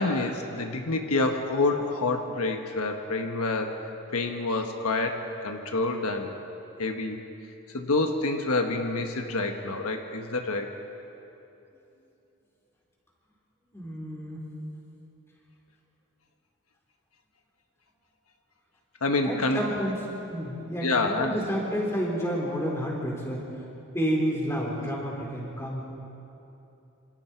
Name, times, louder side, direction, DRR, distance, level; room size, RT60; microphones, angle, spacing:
voice 1, 0.0-3.8 4.1-6.4 6.8-7.2 7.7-10.7 19.0-19.6 20.8-21.5 24.6-24.7, left 2 dB, 80° left, 4 dB, 1.4 m, -27 dB
voice 2, 13.7-14.4 19.2-20.0 20.3-23.4 23.9-25.8, equal, 10° left, -3 dB, 4.2 m, -30 dB
27.5 x 27.0 x 4.6 m, 2.9 s
head